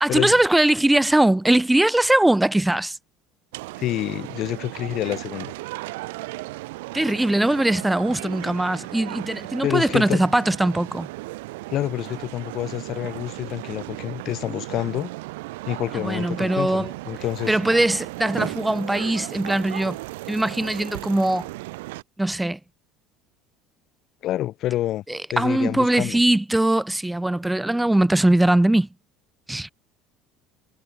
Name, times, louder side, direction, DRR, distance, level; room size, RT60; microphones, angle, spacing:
voice 1, 0.0-3.0 6.9-11.1 15.9-16.9 17.5-20.0 20.3-21.5 22.2-22.6 25.1-28.9 29.5-29.7, right 1 dB, 5° right, 0.5 m, -21 dB
sound 1, 3.5-22.0, right 21 dB, 85° right, 0.5 m, -36 dB
voice 2, 3.8-5.5 9.6-10.3 11.7-15.1 15.7-17.5 24.2-25.0 25.3-26.2, left 14 dB, 55° left, 1.5 m, -27 dB
supercardioid pair, 105°, 0 cm